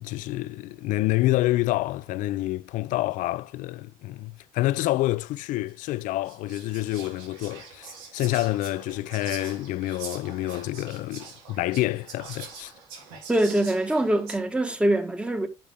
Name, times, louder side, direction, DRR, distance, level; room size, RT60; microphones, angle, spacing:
voice 1, 0.0-12.7, left 17 dB, 75° left, 0.5 m, -28 dB
Whispering, 5.7-5.8 6.2-14.4, right 5 dB, 85° right, 3.0 m, -43 dB
voice 2, 13.3-15.5, right 1 dB, 10° right, 1.6 m, -23 dB
8.7 x 6.0 x 3.5 m
supercardioid pair, 70°, 13 cm